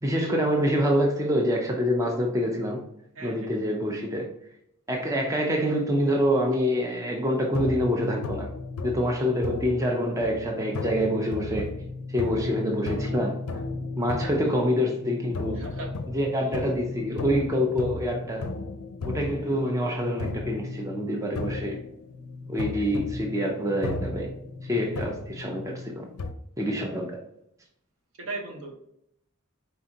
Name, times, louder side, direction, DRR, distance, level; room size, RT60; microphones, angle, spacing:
voice 1, 0.0-2.9 3.2-4.3 4.9-8.5 8.8-11.7 12.1-13.4 14.0-15.7 16.1-18.5 19.0-21.8 22.5-24.3 24.6-26.1 26.6-27.2, equal, 15° right, 0.5 m, -26 dB
sound 1, 7.5-26.3, left 3 dB, 90° left, 0.5 m, -35 dB
voice 2, 15.5-15.9 28.2-28.8, right 3 dB, 65° right, 1.0 m, -37 dB
4.3 x 3.7 x 2.8 m
head